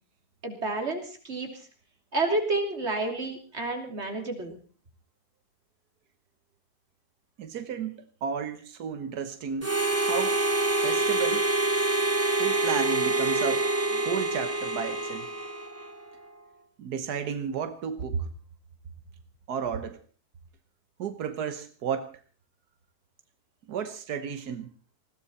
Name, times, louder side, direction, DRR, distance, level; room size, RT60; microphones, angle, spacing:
voice 1, 0.4-1.7 2.1-4.6, right 2 dB, 45° right, 3 dB, 3.4 m, -30 dB
voice 2, 7.4-9.7 10.0-10.4 10.8-11.5 12.4-15.3 16.8-18.3 19.5-20.0 21.0-22.1 23.7-24.7, right 7 dB, 90° right, 8 dB, 1.6 m, -33 dB
Harmonica, 9.6-16.0, right 2 dB, 10° right, 0.9 m, -26 dB
20.5 x 16.5 x 4.2 m, 0.37 s
omnidirectional pair, 1.6 m